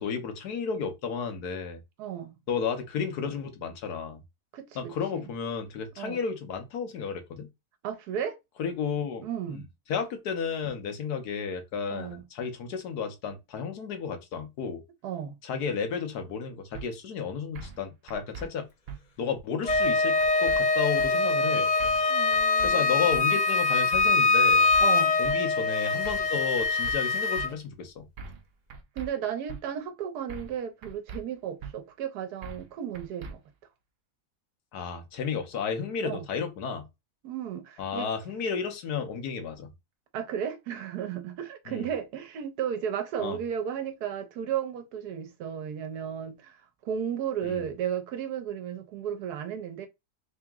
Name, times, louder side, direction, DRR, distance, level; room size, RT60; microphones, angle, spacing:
voice 1, 0.0-1.8 2.5-4.2 4.7-7.5 8.6-14.8 15.4-18.7 19.2-21.7 22.6-24.7 25.2-28.1 34.7-36.9 37.8-39.7 41.7-41.9 43.2-43.4 47.4-47.6, left 6 dB, 80° left, 1.5 m, -32 dB
voice 2, 2.0-2.4 4.5-5.2 6.0-6.2 7.8-8.4 9.2-9.7 11.9-12.2 15.0-15.4 22.1-23.1 24.8-25.2 29.0-33.4 36.0-36.2 37.2-38.1 40.1-49.9, right 9 dB, 80° right, 1.3 m, -34 dB
sound 1, 16.7-16.9 17.6-17.8 18.1-18.5 18.9-19.0 19.7-19.9 20.2-20.6 21.0-21.1 21.8-22.1 22.3-22.7 23.1-23.2 23.9-24.2 24.5-24.8 25.2-25.4 26.0-26.3 26.6-27.0 27.4-27.5 28.2-28.4 28.7-29.1 29.5-29.6 30.3-30.6 30.8-31.2 31.6-31.7 32.4-32.7 32.9-33.3, right 4 dB, 60° right, 0.6 m, -40 dB
Wind instrument woodwind instrument, 19.6-27.5, left 3 dB, 65° left, 0.4 m, -24 dB
3.7 x 2.9 x 3.5 m
omnidirectional pair, 1.7 m